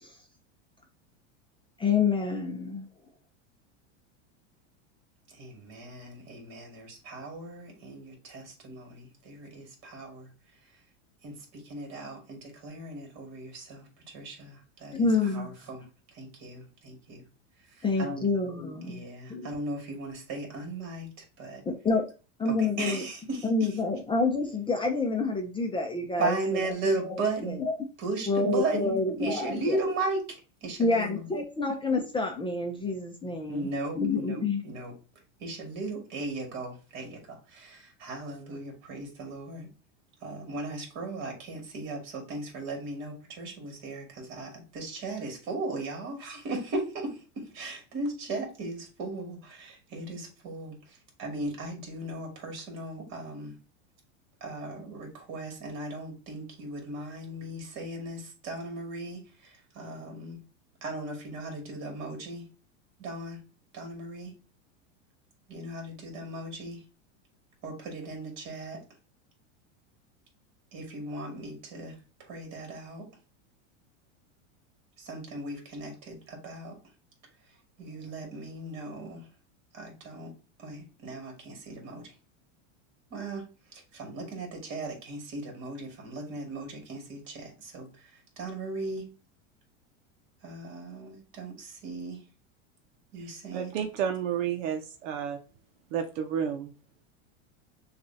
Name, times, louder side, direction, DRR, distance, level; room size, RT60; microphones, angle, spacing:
voice 1, 1.8-2.9 14.9-15.5 17.8-19.0 19.3-19.5 21.7-22.1 22.4-23.0 23.4-26.4 27.0-27.7 28.3-29.8 30.8-33.7 34.0-34.6, left 3 dB, 15° left, 0.6 m, -28 dB
voice 2, 5.3-10.3 11.2-17.3 17.8-18.3 18.9-21.6 22.5-23.7 26.2-27.6 28.0-31.3 33.5-34.9 35.4-39.7 40.2-53.6 54.4-60.4 60.8-62.5 63.0-63.4 63.7-64.3 65.5-66.8 67.6-68.8 70.7-73.1 75.0-76.8 77.8-79.3 79.7-80.3 80.6-82.1 83.1-89.1 90.4-92.2 93.1-93.7, right 2 dB, 45° right, 2.1 m, -37 dB
voice 3, 93.5-95.4 95.9-96.7, right 8 dB, 75° right, 0.8 m, -31 dB
6.5 x 2.5 x 2.7 m
supercardioid pair, 125°, 37 cm